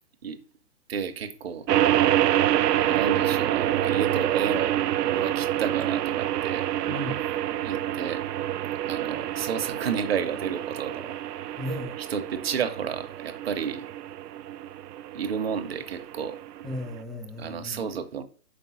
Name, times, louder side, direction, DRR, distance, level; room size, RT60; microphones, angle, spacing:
voice 1, 0.9-1.7 2.8-6.7 7.6-8.2 8.9-11.2 12.1-13.9 15.1-16.4 17.4-18.2, right 7 dB, 40° right, 0.8 m, -31 dB
sound 1, 1.7-17.0, right 12 dB, 80° right, 0.6 m, -27 dB
voice 2, 6.9-7.3 11.6-12.0 16.6-17.9, left 1 dB, ahead, 0.3 m, -35 dB
6.0 x 5.2 x 5.8 m
hypercardioid pair, 165°, 47 cm